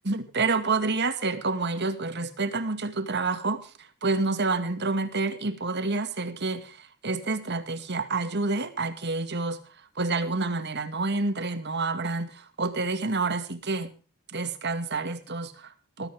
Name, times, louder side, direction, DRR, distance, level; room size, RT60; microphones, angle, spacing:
voice 1, 0.1-9.6 10.0-13.9 14.3-16.1, right 3 dB, 50° right, 10 dB, 2.4 m, -28 dB
20.0 x 14.0 x 3.7 m, 0.37 s
head